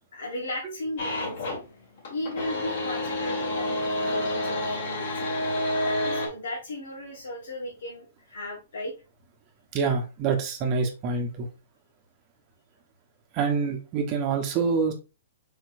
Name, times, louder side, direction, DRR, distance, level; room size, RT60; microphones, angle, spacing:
voice 1, 0.1-1.6 2.1-5.4 5.8-8.9, left 1 dB, 80° left, -3 dB, 1.6 m, -36 dB
sound 1, 1.0-1.6 2.0-6.3, left 1 dB, 65° left, 1.9 m, -29 dB
voice 2, 9.7-11.5 13.3-14.9, right 5 dB, 35° right, 4 dB, 0.9 m, -26 dB
4.4 x 4.4 x 2.6 m, 0.30 s
hypercardioid pair, 135°, 0 cm